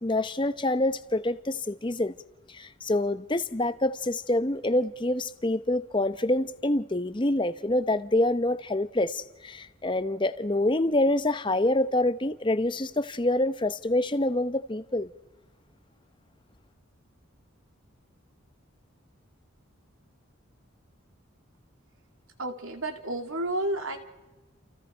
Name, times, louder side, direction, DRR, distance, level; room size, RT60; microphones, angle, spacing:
voice 1, 0.0-2.1 2.5-15.1, left 1 dB, 20° left, 0.7 m, -26 dB
voice 2, 22.4-24.0, right 1 dB, 75° right, 2.6 m, -31 dB
30.0 x 28.5 x 4.5 m
head